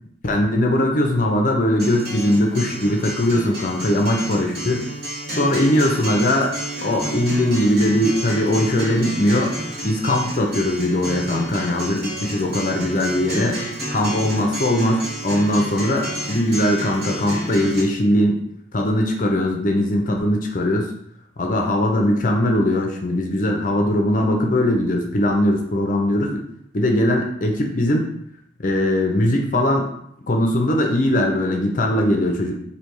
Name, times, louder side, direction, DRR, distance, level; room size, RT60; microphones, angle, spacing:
voice 1, 0.2-4.9 5.4-6.5 6.8-9.5 9.8-13.6 13.9-18.4 18.7-20.9 21.4-26.4 26.7-28.1 28.6-29.9 30.3-32.6, left 1 dB, 45° left, 2 dB, 0.6 m, -20 dB
Acoustic guitar, 1.8-17.8, right 1 dB, 60° right, 1.3 m, -31 dB
3.3 x 2.7 x 4.5 m, 0.71 s
head